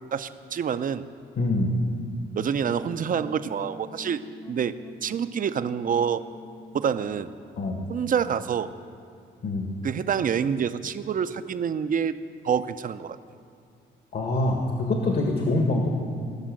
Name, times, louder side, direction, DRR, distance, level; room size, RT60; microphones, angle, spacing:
voice 1, 0.1-1.0 2.3-4.2 4.5-4.7 5.0-6.2 6.7-7.3 7.9-8.7 9.8-12.1 12.4-13.2, right 7 dB, 45° right, 12 dB, 0.6 m, -27 dB
voice 2, 1.4-1.8 7.6-7.9 9.4-9.7 14.1-15.9, left 2 dB, 55° left, 1 dB, 1.7 m, -25 dB
sound 1, 2.7-7.6, left 3 dB, 15° left, 0.9 m, -46 dB
18.0 x 6.2 x 7.6 m, 2.3 s
cardioid pair, 90°, 20 cm